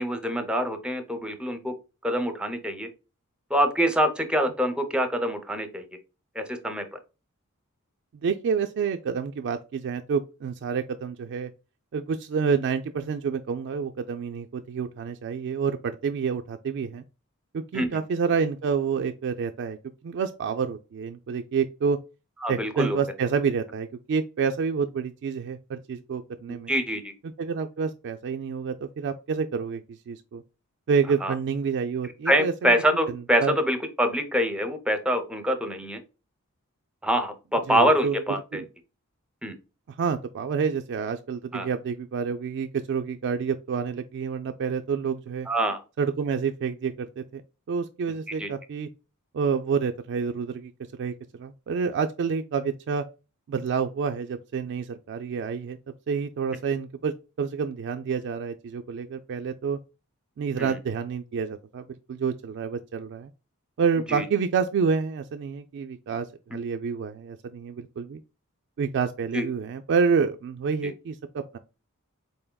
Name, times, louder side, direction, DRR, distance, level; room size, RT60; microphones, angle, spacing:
voice 1, 0.0-1.7 2.0-2.9 3.5-5.8 6.4-6.8 17.7-17.9 22.4-23.0 26.5-27.1 31.2-31.3 32.3-36.0 37.0-38.6 39.4-39.5 41.5-41.7 45.5-45.8 48.4-48.5 60.6-60.8 64.1-64.2 66.5-66.6 69.3-69.5 70.8-70.9, equal, 5° right, 0.6 m, -25 dB
voice 2, 8.2-11.5 11.9-17.0 17.5-19.8 20.0-22.0 22.5-26.7 27.4-30.4 30.9-32.7 33.4-33.6 37.7-38.2 38.5-38.6 39.9-45.5 46.0-47.4 47.7-48.9 49.3-50.7 51.0-53.0 53.5-55.8 56.1-59.8 60.4-61.8 62.1-63.3 63.8-68.2 68.8-71.6, right 6 dB, 55° right, 0.3 m, -28 dB
4.3 x 3.4 x 2.2 m
head